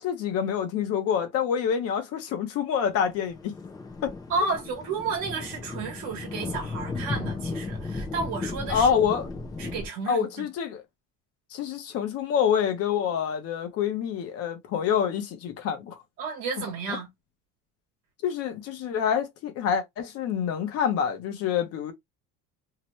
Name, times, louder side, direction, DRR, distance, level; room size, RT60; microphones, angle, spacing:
voice 1, 0.0-3.5 4.0-4.1 8.7-9.3 10.1-10.8 11.5-16.0 18.2-21.9, left 7 dB, 50° left, 0.7 m, -27 dB
Thunder, 3.0-9.9, left 3 dB, 10° left, 0.3 m, -35 dB
voice 2, 4.3-9.0 9.6-10.5 16.2-17.1, right 4 dB, 60° right, 1.1 m, -32 dB
2.8 x 2.2 x 3.0 m
cardioid pair, 170°, 32 cm